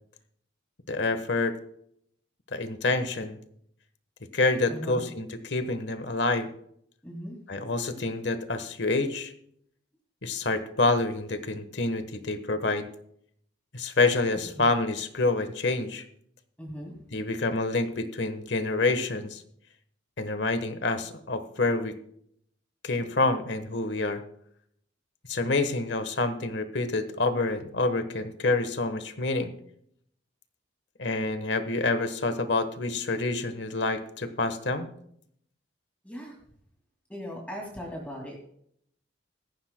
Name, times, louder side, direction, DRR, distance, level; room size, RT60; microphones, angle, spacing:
voice 1, 0.9-1.6 2.5-3.4 4.3-6.5 7.5-9.3 10.2-12.9 13.7-16.0 17.1-19.4 20.2-22.0 22.8-24.2 25.3-29.5 31.0-34.9, left 3 dB, 60° left, 10 dB, 1.2 m, -27 dB
voice 2, 4.7-5.0 7.0-7.4 14.6-14.7 16.6-16.9 36.0-36.4 37.1-38.4, equal, 5° left, -2 dB, 2.3 m, -38 dB
17.0 x 14.5 x 2.2 m, 0.68 s
head